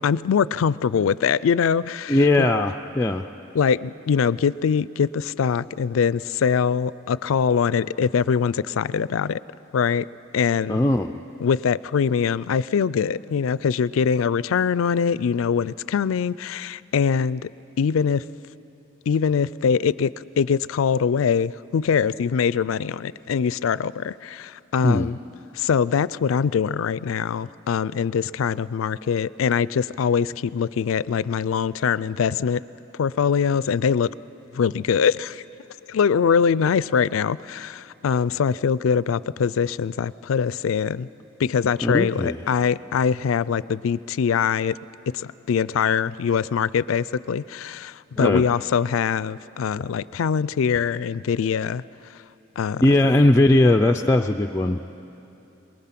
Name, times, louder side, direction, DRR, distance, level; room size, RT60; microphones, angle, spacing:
voice 1, 0.0-2.5 3.5-9.4 9.7-10.1 10.3-10.8 11.4-17.5 17.8-18.2 19.1-20.1 20.4-25.2 25.5-32.6 33.0-34.1 34.5-35.4 35.9-41.1 41.4-44.8 45.1-51.8 52.6-52.8, left 6 dB, 90° left, 19 dB, 0.4 m, -23 dB
voice 2, 2.1-3.3 10.7-11.2 24.8-25.1 41.8-42.5 48.2-48.5 52.8-54.8, left 1 dB, 15° left, 3 dB, 0.4 m, -19 dB
23.0 x 21.0 x 5.9 m, 2.9 s
head